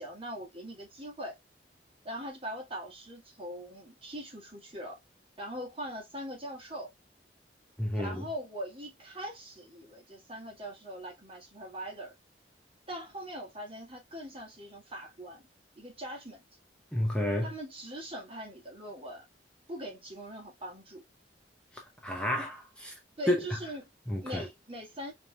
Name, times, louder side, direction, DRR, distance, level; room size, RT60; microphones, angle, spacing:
voice 1, 0.0-1.4 2.0-5.0 5.4-6.9 7.9-12.1 12.9-15.4 15.7-16.4 17.4-19.2 19.7-21.0 23.2-23.9 24.2-25.1, equal, 35° right, 1.7 m, -41 dB
voice 2, 7.8-8.2 16.9-17.5 22.0-22.9 23.3-23.4 24.1-24.4, left 1 dB, 5° left, 0.7 m, -30 dB
5.1 x 2.9 x 2.3 m
head